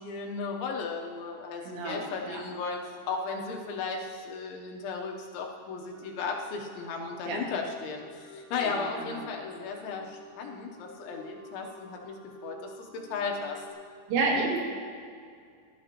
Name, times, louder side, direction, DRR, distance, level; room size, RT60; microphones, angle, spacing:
voice 1, 0.0-12.1 12.4-12.7 13.1-13.7, left 4 dB, 75° left, 1 dB, 3.1 m, -35 dB
voice 2, 1.6-2.4 7.3-7.4 8.6-9.3 14.1-14.6, right 3 dB, 75° right, -1 dB, 4.3 m, -30 dB
sound 1, 5.9-13.7, right 1 dB, 10° left, 0.8 m, -49 dB
19.5 x 12.5 x 2.9 m, 2.2 s
omnidirectional pair, 5.8 m